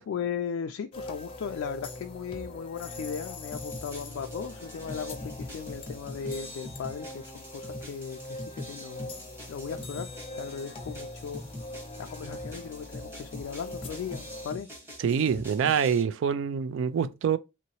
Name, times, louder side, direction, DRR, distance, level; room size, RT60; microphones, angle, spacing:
voice 1, 0.0-9.1 9.5-10.1 10.3-11.4 12.0-14.7, left 7 dB, 80° left, 0.3 m, -37 dB
sound 1, 0.9-14.5, left 1 dB, 30° left, 0.5 m, -42 dB
sound 2, 3.5-16.0, left 1 dB, 15° right, 1.1 m, -44 dB
voice 2, 15.0-17.4, right 7 dB, 75° right, 0.3 m, -26 dB
3.1 x 2.8 x 2.9 m
head